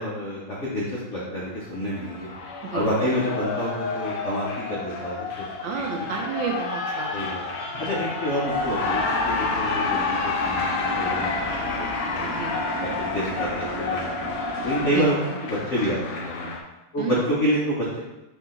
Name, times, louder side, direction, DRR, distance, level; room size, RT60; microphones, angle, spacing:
voice 1, 0.0-2.3 2.7-5.5 5.7-6.1 7.1-7.4 7.8-12.4 12.8-14.3 14.6-16.5 16.9-18.0, equal, 70° left, -6 dB, 0.7 m, -28 dB
Cheering, 1.4-16.6, left 4 dB, 85° left, 1.6 m, -29 dB
voice 2, 2.7-3.1 5.6-7.3 12.2-12.7 14.9-15.1 17.0-17.2, right 6 dB, 75° right, 1 dB, 1.2 m, -31 dB
sound 1, 8.5-15.0, right 2 dB, 60° right, 1.5 m, -36 dB
4.8 x 2.8 x 3.7 m, 0.99 s
omnidirectional pair, 2.3 m